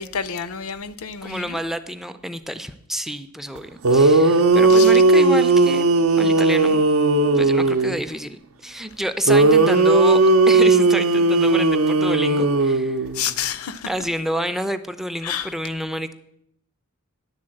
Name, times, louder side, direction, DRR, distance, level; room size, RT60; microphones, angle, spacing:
voice 1, 0.0-1.6 4.7-5.0 13.1-13.9 15.2-15.5, left 7 dB, 85° left, 0.5 m, -29 dB
voice 2, 1.2-5.9 6.2-6.8 7.3-10.2 10.5-13.0 13.9-16.1, equal, ahead, 0.3 m, -28 dB
sound 1, 3.6-3.7 3.8-8.0 9.3-13.3, right 3 dB, 75° right, 0.6 m, -16 dB
10.5 x 3.9 x 7.6 m
head